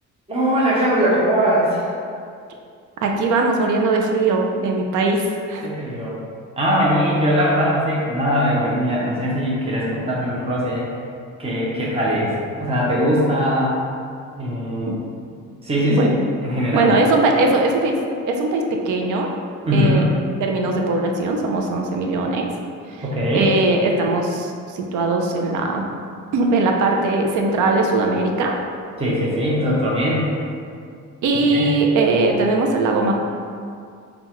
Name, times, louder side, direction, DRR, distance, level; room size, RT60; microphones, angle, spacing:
voice 1, 0.3-1.9 5.6-6.2 6.6-10.8 11.4-13.8 14.4-14.9 15.6-16.1 16.4-16.9 19.6-20.1 23.0-23.5 29.0-30.3 31.5-31.7, equal, 20° right, -6 dB, 0.9 m, -20 dB
voice 2, 3.0-5.7 14.9-15.0 15.8-16.2 16.7-18.0 18.3-19.3 19.7-22.5 22.9-23.1 23.3-25.9 26.3-28.5 31.2-33.1, right 2 dB, 80° right, 2 dB, 0.6 m, -20 dB
5.5 x 2.4 x 3.0 m, 2.3 s
cardioid pair, 90°, 30 cm